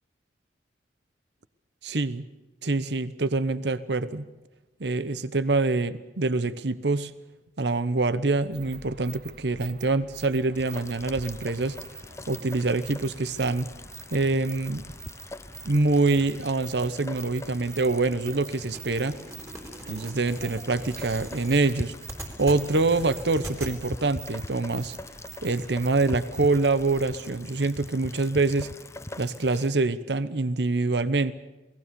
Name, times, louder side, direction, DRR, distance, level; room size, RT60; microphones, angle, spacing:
voice 1, 1.8-2.3 2.6-4.2 4.8-7.1 7.6-11.8 12.3-13.7 14.1-14.8 15.6-19.2 19.9-21.9 22.4-24.9 25.4-28.7 29.2-31.3, right 3 dB, 75° right, 15 dB, 0.9 m, -25 dB
sound 1, 8.5-27.4, right 5 dB, 55° right, 3.8 m, -46 dB
Rain, 10.5-29.7, left 2 dB, 15° left, 0.7 m, -42 dB
sound 2, 18.7-23.7, right 1 dB, 15° right, 3.5 m, -41 dB
28.0 x 19.5 x 7.0 m, 1.1 s
head